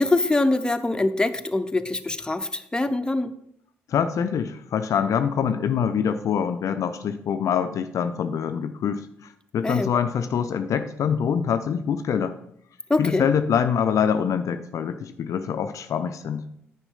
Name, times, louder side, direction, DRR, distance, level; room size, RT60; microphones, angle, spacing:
voice 1, 0.0-3.3 9.6-9.9 12.9-13.3, left 2 dB, 15° left, 9 dB, 0.7 m, -23 dB
voice 2, 3.9-9.0 9.5-12.4 13.0-16.5, left 7 dB, 55° left, 9 dB, 0.5 m, -24 dB
9.8 x 4.6 x 5.5 m, 0.72 s
figure-of-eight pair, 45°, 7 cm